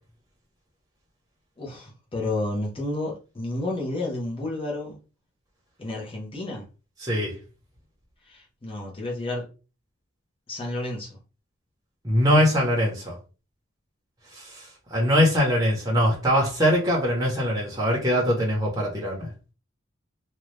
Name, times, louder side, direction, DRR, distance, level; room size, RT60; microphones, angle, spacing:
voice 1, 1.6-5.0 5.8-6.6 8.3-9.5 10.5-11.2, left 2 dB, 25° left, 0.9 m, -31 dB
voice 2, 7.0-7.3 12.0-13.2 14.4-14.6 14.9-19.3, equal, 20° right, 0.9 m, -22 dB
2.8 x 2.4 x 3.2 m
head